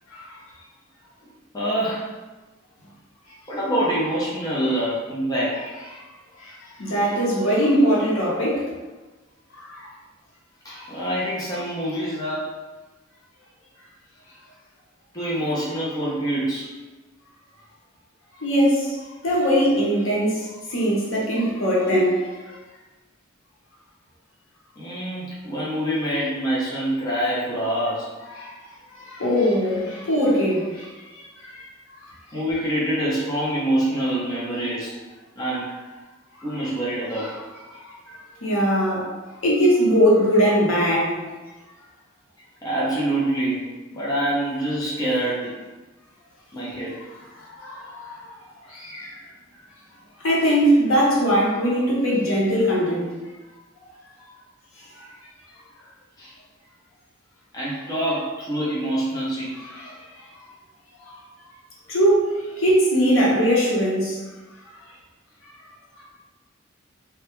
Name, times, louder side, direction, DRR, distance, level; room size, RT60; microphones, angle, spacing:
voice 1, 1.5-2.1 3.5-5.6 10.6-12.5 15.1-16.7 24.8-28.1 32.3-34.9 35.4-35.7 36.4-37.3 42.6-45.5 46.5-47.0 56.2-56.3 57.5-59.5, right 1 dB, 20° left, -7 dB, 0.5 m, -25 dB
voice 2, 6.8-8.6 9.6-9.9 10.8-10.9 18.4-18.9 19.2-20.4 20.7-22.2 22.5-22.6 28.4-28.5 29.0-30.9 31.5-31.6 37.2-37.3 37.8-38.1 38.4-39.1 39.4-41.2 47.5-48.3 48.7-49.1 50.2-53.2 55.0-55.1 59.7-59.9 61.9-62.3 62.6-64.2, equal, 75° left, -5 dB, 0.7 m, -20 dB
2.2 x 2.1 x 2.9 m, 1.2 s
head